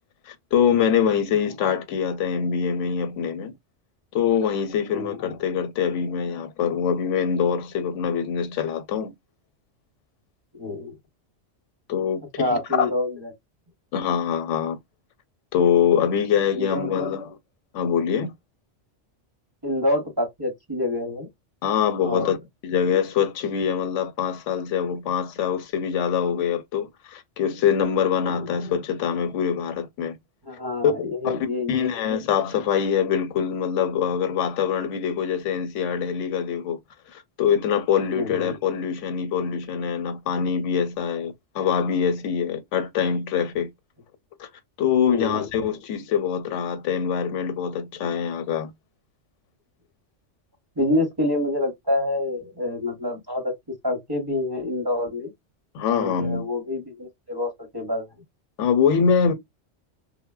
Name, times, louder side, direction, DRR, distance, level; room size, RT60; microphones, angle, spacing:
voice 1, 0.3-3.5 4.1-9.1 11.9-12.4 12.7-12.9 13.9-14.8 15.5-17.4 17.7-18.3 21.6-22.4 22.6-30.2 30.8-30.9 31.2-36.8 37.1-43.7 44.4-44.5 44.8-48.7 55.7-56.5 58.6-59.3, left 7 dB, 80° left, 0.9 m, -24 dB
voice 2, 4.9-5.2 10.5-10.9 12.4-13.3 16.5-17.1 19.6-21.3 22.0-22.4 28.3-28.5 30.4-32.0 38.1-38.6 45.1-45.5 50.8-55.3 55.9-58.1, left 2 dB, 25° right, 0.7 m, -27 dB
3.0 x 2.1 x 2.3 m
omnidirectional pair, 1.2 m